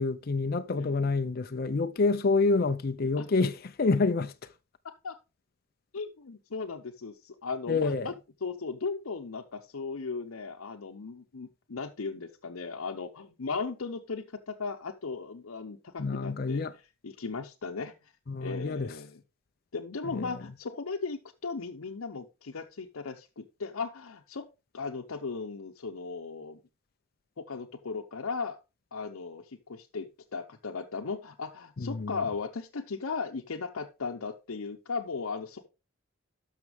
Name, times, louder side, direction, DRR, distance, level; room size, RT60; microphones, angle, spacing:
voice 1, 0.0-4.5 7.7-8.1 16.0-16.7 18.3-19.0 20.1-20.4 31.8-32.2, left 3 dB, 45° left, 0.5 m, -28 dB
voice 2, 5.9-8.1 8.4-16.7 17.0-18.1 18.4-19.2 19.7-26.6 27.4-28.6 28.9-35.7, left 4 dB, 85° left, 0.8 m, -37 dB
12.5 x 5.8 x 3.5 m
head